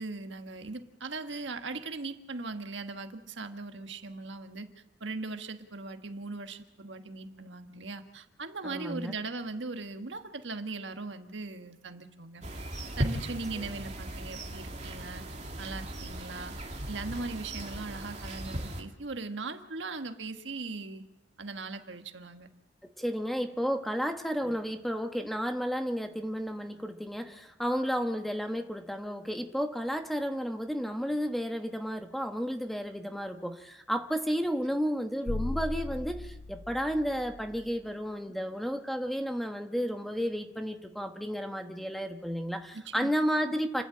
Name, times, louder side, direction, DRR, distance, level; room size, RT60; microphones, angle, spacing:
voice 1, 0.0-4.7 5.0-12.4 13.0-15.2 15.6-16.5 16.9-21.0 21.4-22.5 42.7-43.1, right 3 dB, 75° right, 7 dB, 1.5 m, -39 dB
voice 2, 8.6-9.1 13.5-13.7 22.8-43.8, equal, ahead, 5 dB, 1.3 m, -32 dB
sound 1, 12.4-18.8, right 1 dB, 40° right, 2.6 m, -37 dB
sound 2, 35.3-37.7, left 2 dB, 80° left, 0.9 m, -37 dB
29.0 x 11.5 x 8.8 m, 0.90 s
head